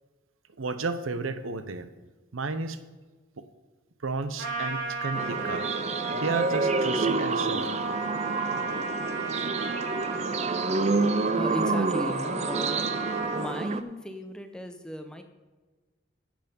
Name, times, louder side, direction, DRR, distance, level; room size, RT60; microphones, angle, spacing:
voice 1, 0.6-1.9 2.3-2.8 3.4-3.5 4.0-5.7 6.1-7.7, right 3 dB, 85° right, 11 dB, 0.7 m, -32 dB
Trumpet, 4.4-13.5, right 2 dB, 70° right, 3.2 m, -34 dB
sound 1, 5.1-13.8, right 4 dB, 35° right, 0.4 m, -28 dB
voice 2, 11.4-12.9 13.2-15.2, equal, 5° left, 6 dB, 0.6 m, -36 dB
9.7 x 7.6 x 5.3 m, 1.3 s
head